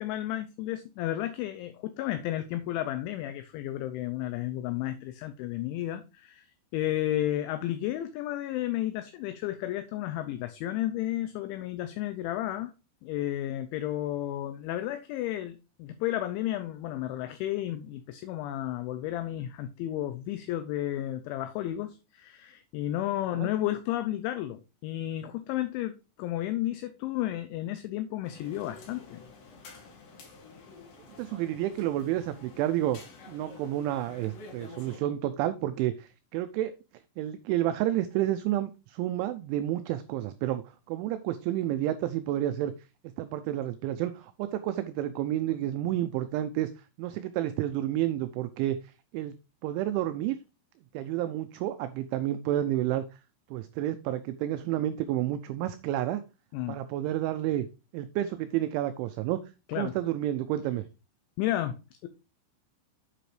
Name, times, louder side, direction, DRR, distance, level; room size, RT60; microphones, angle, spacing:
voice 1, 0.0-6.5 6.7-12.7 13.0-29.2 56.5-56.8 59.7-60.0 61.4-62.1, left 13 dB, 85° left, 2.7 m, -32 dB
sound 1, 28.2-35.0, left 4 dB, 55° left, 3.2 m, -50 dB
voice 2, 31.2-33.0 33.3-36.7 37.2-42.7 43.2-46.7 47.0-49.3 49.6-50.4 50.9-53.2 53.5-56.2 56.7-57.7 57.9-59.4 59.7-60.8, right 13 dB, 85° right, 2.7 m, -30 dB
8.6 x 7.8 x 3.2 m
omnidirectional pair, 5.9 m